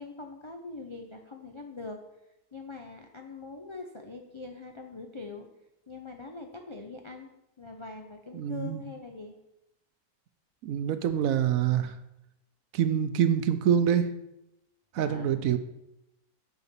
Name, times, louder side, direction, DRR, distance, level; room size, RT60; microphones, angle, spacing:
voice 1, 0.0-2.0 2.5-5.5 5.9-7.3 7.6-9.3 15.0-15.5, left 3 dB, 45° left, 3 dB, 0.4 m, -42 dB
voice 2, 8.3-8.8 10.6-11.9 12.7-14.1 14.9-15.6, right 9 dB, 70° right, 11 dB, 1.0 m, -26 dB
6.8 x 5.0 x 6.8 m, 0.88 s
omnidirectional pair, 1.6 m